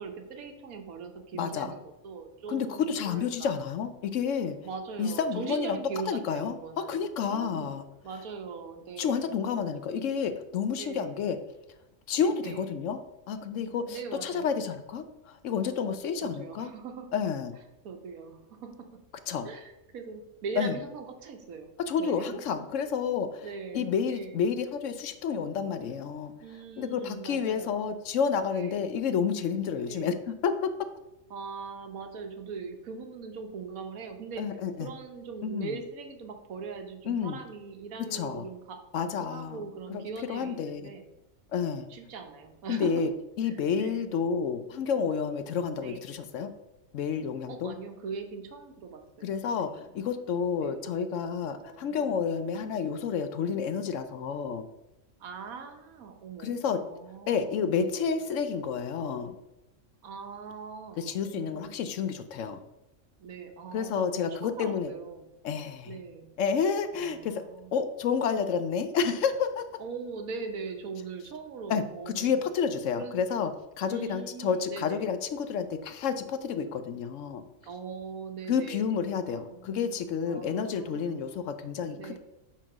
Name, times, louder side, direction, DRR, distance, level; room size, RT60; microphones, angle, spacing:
voice 1, 0.0-3.5 4.6-7.0 7.3-7.7 8.0-9.3 10.8-11.2 12.2-12.8 13.9-14.6 15.8-15.9 16.2-17.1 17.8-19.0 19.4-21.7 22.0-22.2 23.4-23.8 24.1-24.5 26.4-27.9 28.5-28.9 29.8-30.3 31.3-34.4 34.8-41.1 41.9-42.9 43.4-44.1 45.8-46.2 47.5-49.8 50.6-50.9 51.6-52.1 55.2-58.0 60.0-61.8 63.2-65.3 65.9-66.3 66.9-67.7 69.8-72.4 73.0-73.2 73.9-75.1 77.6-80.0 80.3-81.3 81.9-82.2, right 5 dB, 85° right, 5 dB, 1.4 m, -41 dB
voice 2, 1.4-1.7 2.5-4.6 5.0-5.8 6.1-7.8 9.0-11.4 12.1-13.0 13.3-16.7 17.1-17.5 19.3-19.5 20.6-20.8 21.8-23.5 23.7-26.3 26.8-30.7 34.4-34.9 35.4-35.8 37.1-37.4 38.1-38.5 38.9-40.0 40.3-40.9 41.5-41.9 42.7-43.1 43.4-46.5 46.9-47.7 49.2-54.6 56.4-56.8 57.3-59.3 61.0-62.6 63.7-64.9 65.4-66.0 66.4-67.4 67.7-69.8 71.7-73.5 73.8-77.4 78.5-82.2, left 6 dB, 70° left, 10 dB, 0.9 m, -30 dB
5.8 x 4.5 x 6.0 m, 0.93 s
omnidirectional pair, 1.4 m